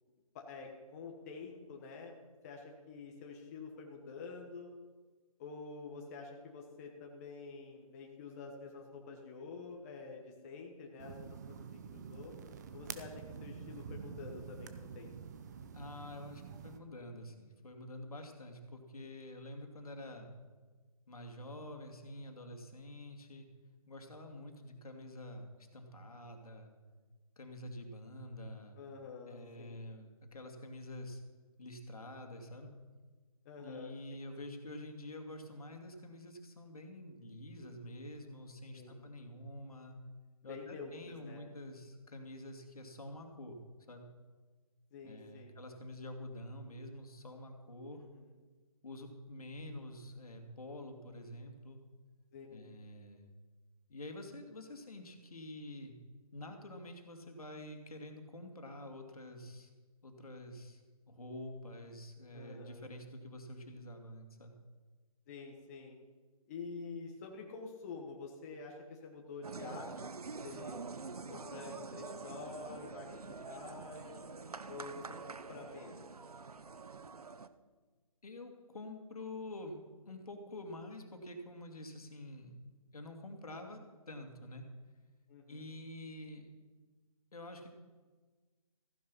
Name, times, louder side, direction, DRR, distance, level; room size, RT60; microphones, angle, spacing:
voice 1, 0.3-2.2 2.4-4.7 5.4-11.2 11.7-12.3 12.7-15.1 28.8-29.8 33.4-33.9 38.7-39.0 40.4-41.4 44.9-45.5 47.9-48.3 52.3-52.7 62.3-62.8 65.3-66.0 66.5-69.9 70.4-70.8 71.3-74.2 74.6-76.0 85.3-85.7, left 4 dB, 25° left, 0 dB, 1.5 m, -48 dB
sound 1, 11.0-16.8, right 6 dB, 30° right, 0.7 m, -47 dB
voice 2, 15.7-20.3 21.1-23.5 23.9-26.7 27.4-28.8 29.3-31.2 31.6-32.7 33.6-40.0 40.4-43.6 43.9-44.1 45.0-48.0 48.8-51.8 52.5-53.4 53.9-55.9 56.3-59.7 60.0-64.5 78.2-79.8 80.1-82.5 82.9-83.8 84.1-84.6 85.5-86.5 87.3-87.7, left 1 dB, 75° left, 4 dB, 2.6 m, -48 dB
sound 2, 69.4-77.5, right 4 dB, 85° right, 0.9 m, -46 dB
15.0 x 10.5 x 5.5 m, 1.4 s
figure-of-eight pair, 155°, 19 cm